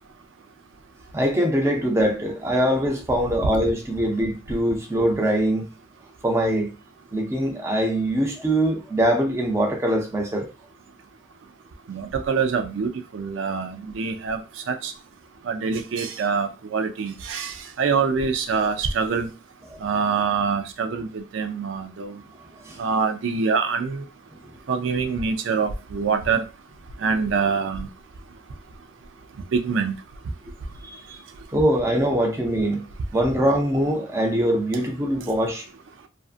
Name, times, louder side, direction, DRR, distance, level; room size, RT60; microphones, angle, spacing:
voice 1, 1.1-5.7 6.2-6.7 7.1-10.5 19.7-19.8 22.6-22.8 30.9-31.2 31.5-32.9 33.1-35.7, right 1 dB, 15° right, 0.4 m, -23 dB
voice 2, 11.9-14.4 14.7-14.9 15.5-19.3 19.8-22.2 22.8-24.0 24.7-26.4 27.0-27.9 29.5-29.9, right 5 dB, 90° right, 0.4 m, -25 dB
2.5 x 2.4 x 2.4 m
head